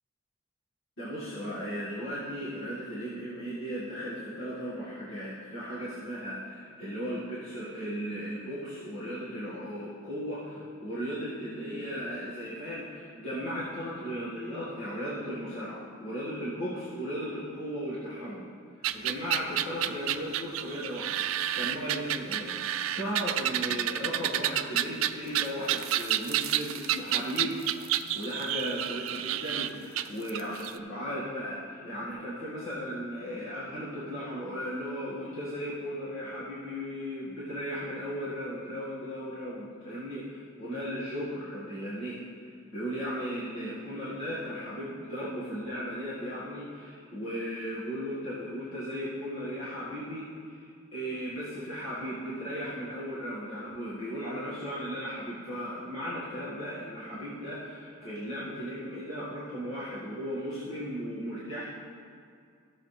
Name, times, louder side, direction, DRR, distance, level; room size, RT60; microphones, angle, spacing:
voice 1, 1.0-18.5 18.9-27.6 27.8-42.2 42.7-61.7, equal, 75° left, -10 dB, 2.0 m, -36 dB
sound 1, 18.8-30.7, right 12 dB, 80° right, 0.4 m, -30 dB
15.0 x 7.1 x 3.4 m, 2.2 s
head